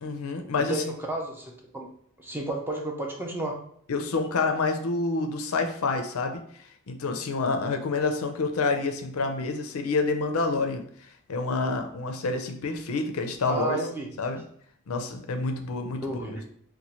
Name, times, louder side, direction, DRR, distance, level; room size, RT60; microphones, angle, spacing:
voice 1, 0.0-0.8 3.9-6.4 6.9-13.8 14.2-14.4 14.9-16.5, left 3 dB, 75° left, 5 dB, 0.5 m, -28 dB
voice 2, 0.6-1.9 2.2-3.6 13.5-14.1 16.0-16.4, right 1 dB, 10° right, 0 dB, 0.5 m, -32 dB
3.0 x 2.2 x 4.1 m, 0.64 s
head